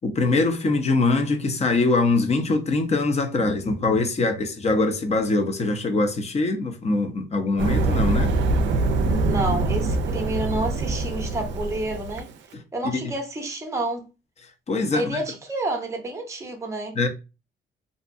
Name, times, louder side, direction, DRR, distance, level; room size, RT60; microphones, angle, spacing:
voice 1, 0.0-8.3 14.7-15.2 17.0-17.1, left 3 dB, 35° left, 0.5 m, -23 dB
sound 1, 7.6-12.2, right 2 dB, 70° right, 0.4 m, -24 dB
voice 2, 9.1-12.3 12.7-14.1 14.9-17.0, right 2 dB, 15° right, 0.6 m, -29 dB
2.6 x 2.2 x 2.5 m
cardioid pair, 90°, 20 cm